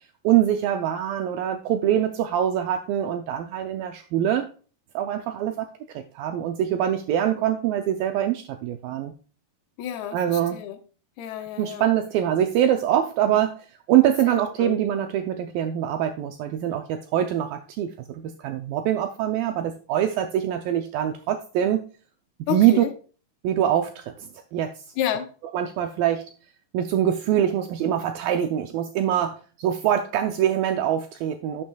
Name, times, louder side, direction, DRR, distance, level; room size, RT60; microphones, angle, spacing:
voice 1, 0.2-4.5 4.9-9.1 10.1-10.6 11.6-13.6 13.9-21.8 22.5-22.8 23.4-24.7 25.5-26.3 26.7-31.6, right 11 dB, 80° right, 6 dB, 2.1 m, -24 dB
voice 2, 9.8-10.8 11.2-11.9 14.3-14.8 22.5-22.9 25.0-25.3, left 10 dB, 85° left, 7 dB, 2.9 m, -30 dB
11.5 x 7.3 x 2.2 m, 0.37 s
omnidirectional pair, 4.7 m